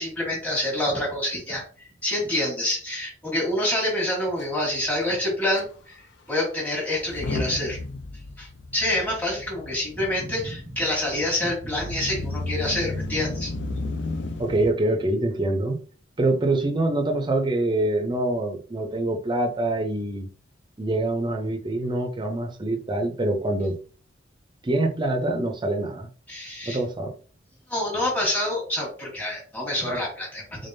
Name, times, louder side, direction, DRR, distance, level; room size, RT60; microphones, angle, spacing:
voice 1, 0.0-7.8 8.4-13.5 26.3-26.8 27.7-30.7, left 1 dB, 10° left, 1.4 m, -27 dB
Motor vehicle (road) / Engine starting / Accelerating revving vroom, 4.4-4.5 4.7-4.9 5.6-5.7 6.9-14.7, left 2 dB, 65° left, 0.5 m, -33 dB
voice 2, 14.4-15.8 16.2-20.3 20.8-23.8 24.6-26.1 26.7-27.1, right 2 dB, 25° right, 0.6 m, -25 dB
3.8 x 3.4 x 2.6 m
head